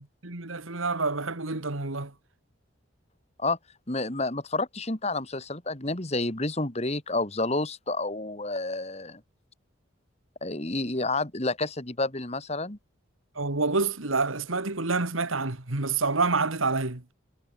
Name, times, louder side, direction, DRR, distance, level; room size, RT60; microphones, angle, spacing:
voice 1, 0.2-2.1 13.4-17.0, right 3 dB, 90° right, 2.3 m, -27 dB
voice 2, 3.9-9.2 10.4-12.8, left 2 dB, 30° left, 2.2 m, -29 dB
head